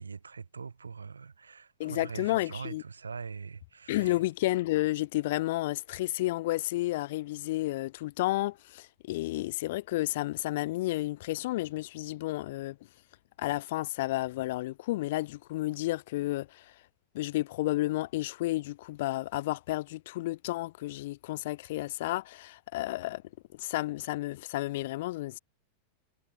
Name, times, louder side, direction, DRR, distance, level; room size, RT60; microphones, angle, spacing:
voice 1, 0.0-4.2, right 5 dB, 75° right, 6.6 m, -42 dB
voice 2, 1.8-2.8 3.9-12.8 13.4-16.8 17.1-23.2 23.5-25.4, left 17 dB, 55° left, 0.5 m, -31 dB
figure-of-eight pair, 90°, 0 cm